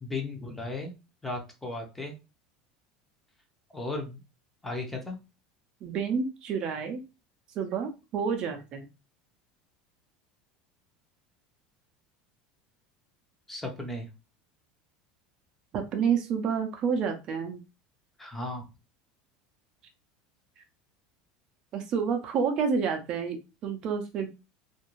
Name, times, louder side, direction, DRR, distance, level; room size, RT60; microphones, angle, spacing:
voice 1, 0.0-0.9 1.2-2.1 3.7-4.2 4.6-5.2 13.5-14.1 18.2-18.7, left 2 dB, 10° left, 2 dB, 0.6 m, -35 dB
voice 2, 5.8-7.0 7.6-8.9 15.7-17.6 21.7-24.3, right 6 dB, 45° right, 5 dB, 0.5 m, -29 dB
2.5 x 2.2 x 3.0 m, 0.28 s
supercardioid pair, 130°, 2 cm